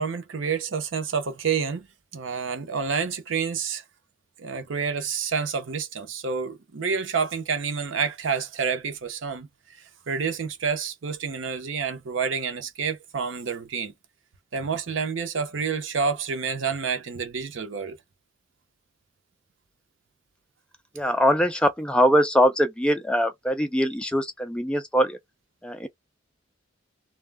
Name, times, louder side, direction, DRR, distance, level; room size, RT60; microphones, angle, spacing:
voice 1, 0.0-1.9 2.1-3.8 4.4-9.5 10.1-13.9 14.5-18.0, right 5 dB, 70° right, 0.6 m, -28 dB
voice 2, 20.9-25.2 25.6-25.9, equal, 5° left, 0.3 m, -22 dB
2.2 x 2.0 x 3.3 m
head